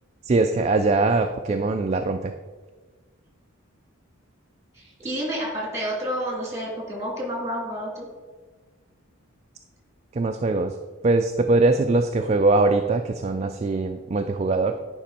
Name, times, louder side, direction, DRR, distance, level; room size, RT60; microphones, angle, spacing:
voice 1, 0.2-2.3 10.1-10.8 11.0-14.8, right 3 dB, 30° right, 6 dB, 0.3 m, -22 dB
voice 2, 4.7-8.1, equal, 15° right, -3 dB, 2.7 m, -30 dB
10.0 x 5.2 x 4.2 m, 1.3 s
head